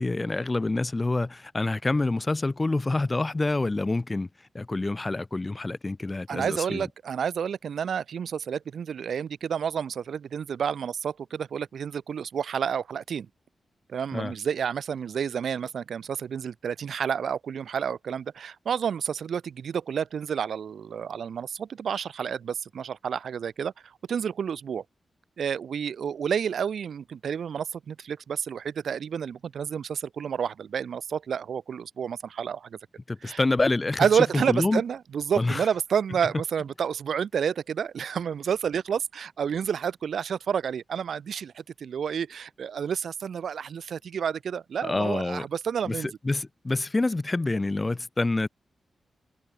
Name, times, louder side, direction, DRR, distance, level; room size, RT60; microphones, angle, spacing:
voice 1, 0.0-4.3 4.5-6.8 14.1-14.3 33.1-34.8 35.3-35.6 44.8-45.4 45.9-48.5, left 2 dB, 20° left, 4.1 m, -27 dB
voice 2, 6.3-13.3 13.9-24.8 25.4-32.8 33.2-33.4 34.0-46.1, right 7 dB, 75° right, 3.8 m, -30 dB
wide cardioid pair, 160°, 0 cm